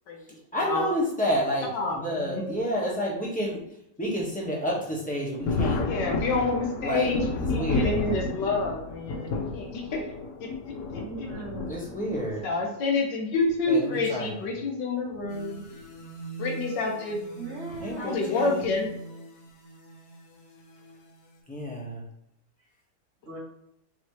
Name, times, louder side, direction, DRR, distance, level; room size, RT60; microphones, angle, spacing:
voice 1, 0.5-3.6 4.0-5.8 6.8-7.1 7.4-8.0 11.7-12.5 13.7-14.3 17.8-18.7 21.5-22.0, equal, 5° left, -4 dB, 1.0 m, -30 dB
voice 2, 1.7-2.6 5.8-7.2 7.5-10.1 10.9-11.3 12.4-15.6 16.4-17.2 18.0-18.9, left 3 dB, 90° left, 1 dB, 1.5 m, -28 dB
Thunder, 5.4-12.5 13.5-13.6 15.0-15.3 15.7-15.8 17.7-17.9 18.6-19.0, left 3 dB, 75° left, 0.7 m, -31 dB
voice 3, 10.9-11.8 17.4-18.7 23.2-23.4, right 2 dB, 45° right, -3 dB, 1.2 m, -39 dB
sound 1, 15.3-21.4, right 3 dB, 50° left, 0.9 m, -43 dB
5.1 x 2.9 x 3.0 m, 0.78 s
omnidirectional pair, 1.8 m